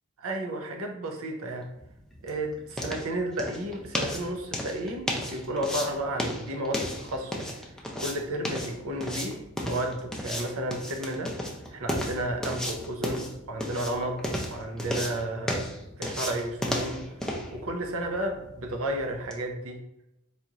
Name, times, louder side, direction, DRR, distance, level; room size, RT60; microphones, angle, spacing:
voice 1, 0.2-1.7 2.2-7.7 8.0-11.4 11.7-15.7 16.0-17.0 17.5-19.8, right 1 dB, 70° right, 3 dB, 0.6 m, -32 dB
sound 1, 1.6-19.4, equal, 5° left, 0.4 m, -35 dB
4.1 x 2.9 x 2.4 m, 0.88 s
head